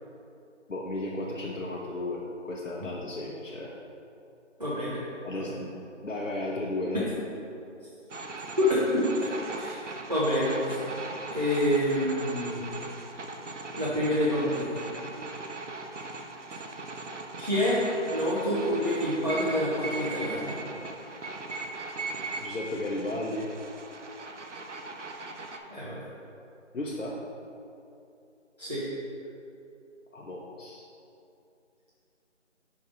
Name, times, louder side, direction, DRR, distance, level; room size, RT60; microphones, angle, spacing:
voice 1, 0.7-3.7 5.2-5.8 6.0-7.1 22.4-23.5 26.7-27.1 30.1-30.8, left 2 dB, 85° left, -4 dB, 1.0 m, -34 dB
voice 2, 4.6-5.0 5.3-5.5 8.6-8.7 8.9-9.0 9.5-10.8 11.3-12.6 13.8-14.8 17.4-17.8 18.1-20.6 25.7-26.1 28.6-28.8, left 1 dB, 35° right, -8 dB, 0.9 m, -27 dB
sound 1, 8.1-25.6, right 3 dB, 70° right, 0.8 m, -39 dB
5.3 x 4.8 x 5.1 m, 2.6 s
figure-of-eight pair, 180°, 37 cm